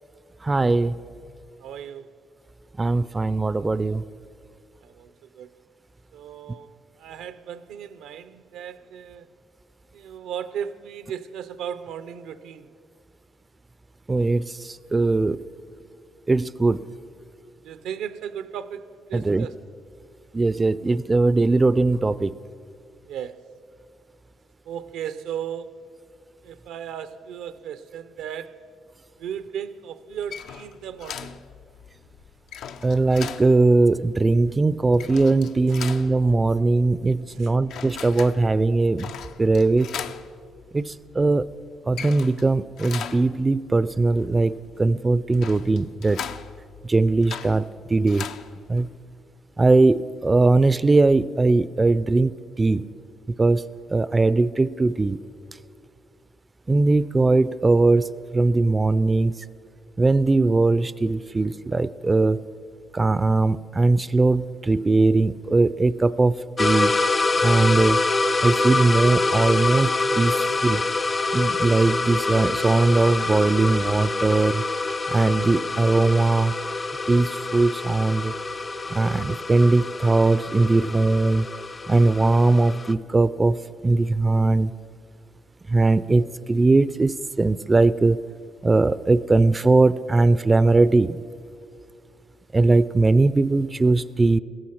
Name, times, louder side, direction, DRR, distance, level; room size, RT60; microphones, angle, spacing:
voice 1, 0.4-1.0 2.8-4.0 14.1-15.4 16.3-16.8 19.1-19.5 20.3-22.3 32.8-39.1 39.4-39.9 40.7-41.4 41.9-46.2 46.8-48.3 48.7-48.9 49.6-52.8 53.4-53.6 53.9-55.2 56.7-59.4 60.0-62.5 62.9-66.9 67.4-68.0 68.4-70.8 71.3-74.6 75.1-76.6 77.1-78.3 78.9-81.5 81.9-83.6 83.8-84.7 85.7-88.2 88.6-91.2 92.5-94.4, right 3 dB, 25° right, 0.3 m, -20 dB
voice 2, 1.6-2.1 4.8-5.6 6.1-9.3 9.9-12.7 17.6-19.5 23.1-23.5 24.6-26.0 26.4-28.6 29.2-31.4 35.7-35.8 37.3-37.5, right 8 dB, 90° right, 0.6 m, -36 dB
sound 1, 30.1-49.0, left 8 dB, 80° left, 0.6 m, -40 dB
sound 2, 66.6-82.9, left 3 dB, 30° left, 0.6 m, -26 dB
16.0 x 14.0 x 5.8 m
cardioid pair, 90°, 0 cm